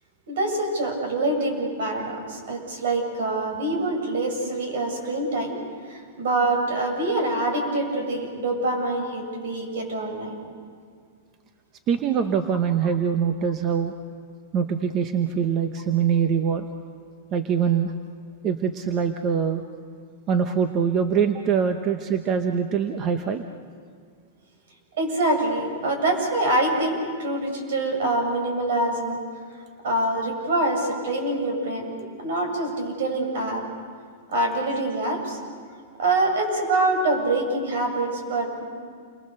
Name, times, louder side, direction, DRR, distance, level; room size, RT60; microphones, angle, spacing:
voice 1, 0.3-5.6 5.9-10.3 25.0-29.2 29.8-31.9 32.2-33.6 34.3-35.4 36.0-38.6, right 2 dB, 70° right, 3 dB, 7.3 m, -25 dB
voice 2, 11.9-13.9 14.5-16.7 17.3-17.9 18.4-19.6 20.3-23.4, right 7 dB, 25° right, 7 dB, 0.9 m, -23 dB
29.0 x 23.0 x 6.8 m, 2.1 s
supercardioid pair, 165°, 0 cm